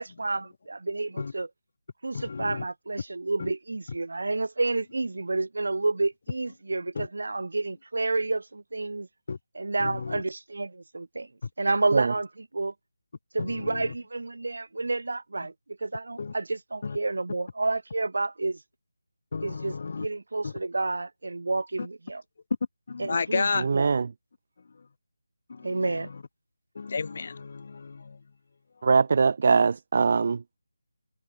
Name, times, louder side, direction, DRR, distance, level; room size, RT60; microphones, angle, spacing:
voice 1, 0.0-1.5 2.0-9.1 9.5-11.3 11.6-12.7 13.3-15.5 15.8-18.6 19.4-22.2 23.0-23.9 25.6-26.1, right 3 dB, 65° right, 4.0 m, -30 dB
voice 2, 2.1-2.6 3.4-3.5 7.0-7.1 9.3-9.4 9.8-10.2 13.4-13.9 16.2-16.3 16.8-17.0 19.3-20.1 20.4-20.5 22.9-23.6 25.5-25.8 26.8-28.2, left 4 dB, 45° left, 0.7 m, -32 dB
voice 3, 23.6-24.1 28.8-30.4, right 5 dB, 45° right, 0.3 m, -22 dB
figure-of-eight pair, 165°, 0 cm